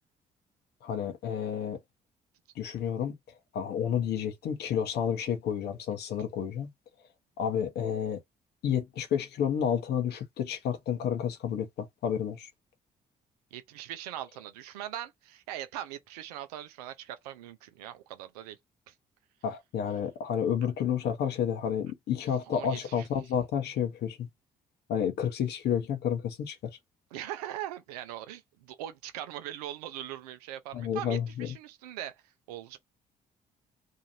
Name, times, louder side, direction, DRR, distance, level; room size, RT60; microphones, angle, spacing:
voice 1, 0.8-1.8 2.6-3.1 3.5-6.7 7.4-8.2 8.6-12.5 19.4-24.3 24.9-26.7 30.7-31.5, left 8 dB, 55° left, 0.8 m, -30 dB
voice 2, 13.5-18.6 18.9-19.0 22.5-23.1 27.1-32.2 32.5-32.8, right 12 dB, 75° right, 0.5 m, -41 dB
2.6 x 2.4 x 2.9 m
figure-of-eight pair, 45°, 20 cm